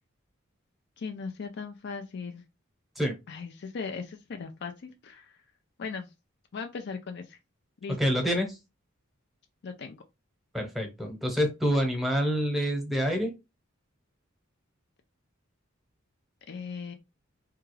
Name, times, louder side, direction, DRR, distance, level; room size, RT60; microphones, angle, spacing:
voice 1, 1.0-2.4 3.3-5.4 5.8-6.1 6.5-7.4 7.8-8.0 9.6-10.0 16.5-16.9, left 5 dB, 55° left, 6 dB, 0.4 m, -38 dB
voice 2, 8.0-8.6 10.5-13.3, equal, ahead, 3 dB, 1.0 m, -27 dB
3.5 x 2.3 x 3.2 m, 0.24 s
head